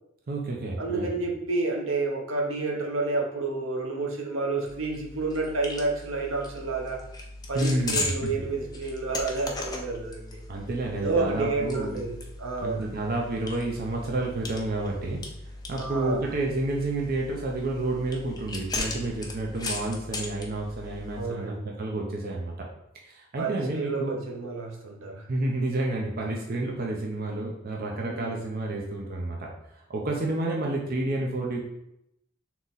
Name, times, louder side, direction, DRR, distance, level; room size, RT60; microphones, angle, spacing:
voice 1, 0.3-1.1 7.5-8.3 10.5-12.0 12.6-15.2 15.7-22.5 23.0-24.2 25.3-31.6, right 2 dB, 50° right, -1 dB, 0.6 m, -30 dB
voice 2, 0.8-7.0 7.5-10.4 11.0-12.9 15.7-16.2 21.1-21.7 23.4-25.2 28.0-28.5, right 3 dB, 80° right, 1 dB, 0.8 m, -30 dB
sound 1, 4.7-21.2, left 2 dB, 20° left, 0.6 m, -38 dB
3.8 x 3.0 x 4.0 m, 0.81 s
head